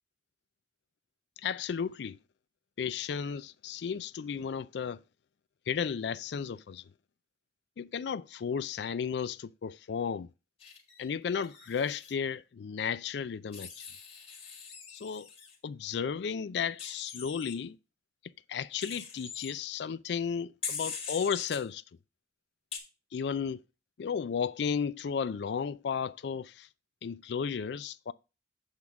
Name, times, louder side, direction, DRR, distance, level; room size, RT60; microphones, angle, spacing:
voice 1, 1.4-2.2 2.8-5.0 5.7-6.8 7.8-10.3 11.0-13.8 14.9-15.3 15.6-17.8 18.5-21.8 23.1-23.6 24.0-26.7 27.0-28.1, left 6 dB, 65° left, 0.4 m, -34 dB
Wild animals, 10.6-12.1 13.5-15.6 16.8-17.5 18.8-19.5 20.6-21.6 22.7-22.8, left 6 dB, 35° left, 1.9 m, -42 dB
8.2 x 3.6 x 5.7 m
head